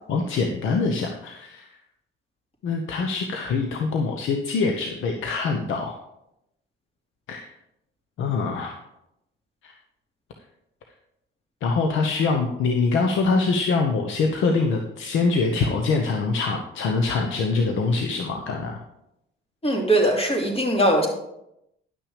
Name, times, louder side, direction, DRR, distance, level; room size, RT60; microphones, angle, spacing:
voice 1, 0.1-1.7 2.6-5.9 7.3-7.5 8.2-8.8 9.6-9.7 11.6-18.8, left 4 dB, 80° left, 3 dB, 1.1 m, -24 dB
voice 2, 19.6-21.1, right 1 dB, 30° left, 0 dB, 2.8 m, -20 dB
10.5 x 6.1 x 5.1 m, 0.83 s
cardioid pair, 90°, 20 cm